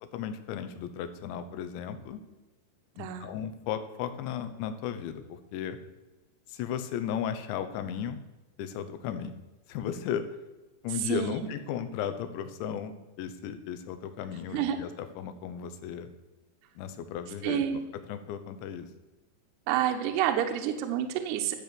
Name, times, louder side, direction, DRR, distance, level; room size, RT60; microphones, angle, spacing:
voice 1, 0.0-2.2 3.0-5.8 6.5-8.2 8.6-9.4 9.7-10.3 10.8-16.1 16.8-17.8 18.1-18.9, left 9 dB, 85° left, 9 dB, 3.3 m, -35 dB
voice 2, 3.0-3.3 11.0-11.3 14.5-14.8 17.4-17.8 19.7-21.6, right 10 dB, 75° right, 6 dB, 2.8 m, -28 dB
12.5 x 8.0 x 6.8 m, 1.1 s
omnidirectional pair, 5.1 m